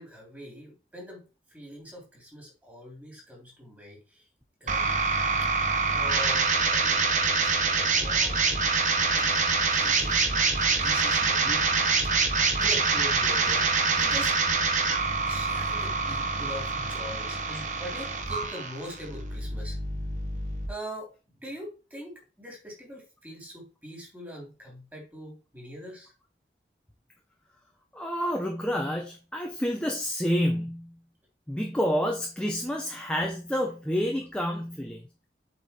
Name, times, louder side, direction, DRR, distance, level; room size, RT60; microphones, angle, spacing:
voice 1, 0.0-4.3 4.6-5.0 5.4-5.5 5.9-8.4 8.9-11.7 12.6-14.4 15.3-19.8 20.7-26.1, equal, 10° right, -2 dB, 3.1 m, -43 dB
sound 1, 4.7-20.7, right 4 dB, 45° right, 1.2 m, -25 dB
voice 2, 27.9-31.0 31.5-35.0, equal, 5° left, 1 dB, 0.9 m, -29 dB
8.1 x 4.5 x 4.4 m, 0.32 s
head